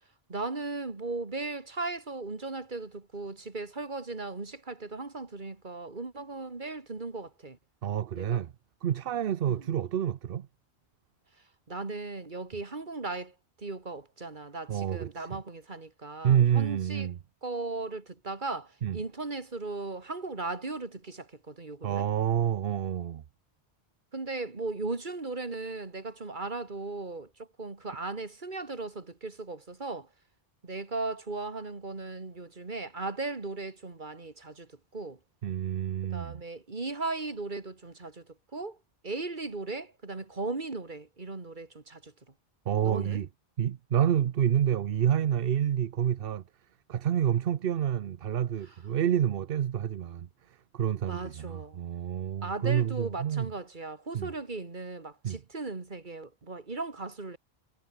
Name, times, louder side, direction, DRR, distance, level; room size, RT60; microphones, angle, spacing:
voice 1, 0.3-7.6 8.2-8.4 9.5-9.7 11.7-17.1 17.4-22.1 24.1-30.1 30.6-35.2 36.1-38.2 38.5-38.8 39.0-42.1 42.8-43.2 51.0-51.8 52.4-57.4, right 3 dB, 50° right, 2.5 m, -37 dB
voice 2, 7.8-8.5 8.8-10.5 14.7-15.4 16.2-17.2 18.8-19.0 21.8-23.2 35.4-36.4 42.7-43.3 43.6-46.4 46.9-53.5 54.1-54.3 55.2-55.4, right 9 dB, 65° right, 0.9 m, -28 dB
omnidirectional pair, 1.1 m